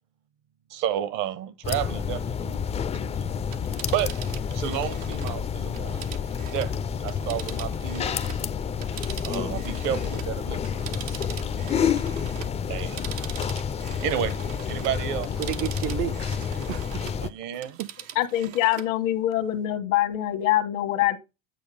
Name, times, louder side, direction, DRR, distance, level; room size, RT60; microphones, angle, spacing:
voice 1, 0.7-3.3 3.9-4.3 4.5-6.1 6.5-6.7 7.0-8.4 9.2-11.2 12.7-13.0 14.0-14.3 14.7-15.3 17.2-17.8, right 10 dB, 55° right, 1.0 m, -31 dB
sound 1, 1.6-17.3, left 7 dB, 15° left, 0.4 m, -29 dB
Telephone, 3.4-8.5 8.8-17.2 17.5-18.9 19.3-19.4, right 11 dB, 85° right, 1.0 m, -42 dB
voice 2, 15.4-17.3 17.8-17.9, right 13 dB, 40° right, 0.5 m, -32 dB
voice 3, 18.2-21.2, left 13 dB, 80° left, 1.4 m, -24 dB
9.1 x 4.7 x 3.4 m
supercardioid pair, 110°, 39 cm